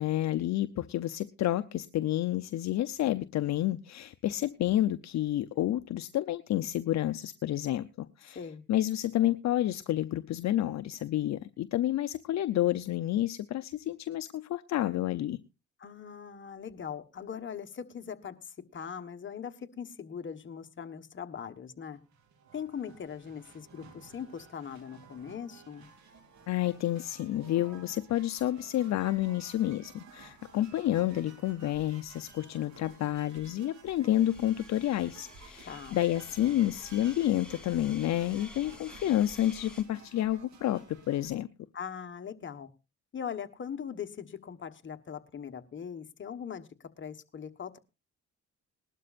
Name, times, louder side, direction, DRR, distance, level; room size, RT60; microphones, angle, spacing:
voice 1, 0.0-8.4 8.7-15.4 26.5-41.5, left 13 dB, 65° left, 12 dB, 0.6 m, -30 dB
voice 2, 15.8-22.0 22.5-25.9 35.6-36.0 41.7-42.7 43.1-46.7 47.0-47.8, left 7 dB, 40° left, 7 dB, 1.3 m, -41 dB
sound 1, 21.9-41.3, right 5 dB, 65° right, 2.9 m, -54 dB
sound 2, 34.1-39.8, left 2 dB, 5° left, 2.8 m, -51 dB
20.0 x 12.0 x 2.5 m, 0.27 s
cardioid pair, 90°, 30 cm